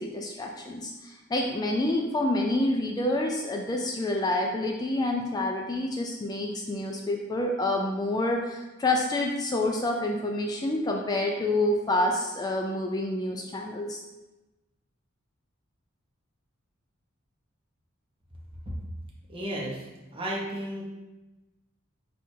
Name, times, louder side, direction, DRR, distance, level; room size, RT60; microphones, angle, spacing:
voice 1, 0.0-14.0, left 1 dB, 20° left, 1 dB, 0.3 m, -28 dB
voice 2, 19.3-20.8, right 1 dB, 25° right, -4 dB, 0.7 m, -34 dB
4.2 x 2.4 x 4.4 m, 1.1 s
head